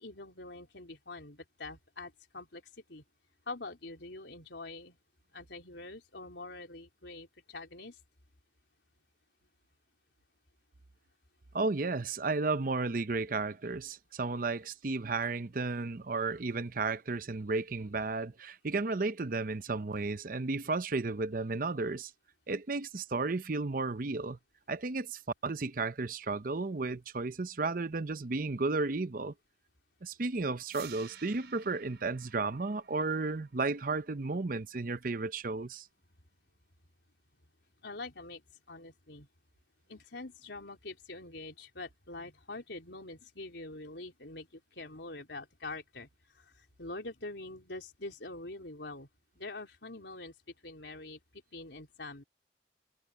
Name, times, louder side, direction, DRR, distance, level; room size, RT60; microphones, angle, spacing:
voice 1, 0.0-2.6 2.9-3.0 3.5-5.0 5.3-8.0 37.8-38.4 38.7-39.3 39.9-49.1 49.4-50.3 50.6-52.2, left 2 dB, 75° left, 4.0 m, -45 dB
voice 2, 11.5-22.1 22.5-24.4 24.7-29.3 30.0-35.9, right 3 dB, 50° right, 0.7 m, -33 dB
sound 1, 30.6-36.7, right 9 dB, 70° right, 5.3 m, -56 dB
head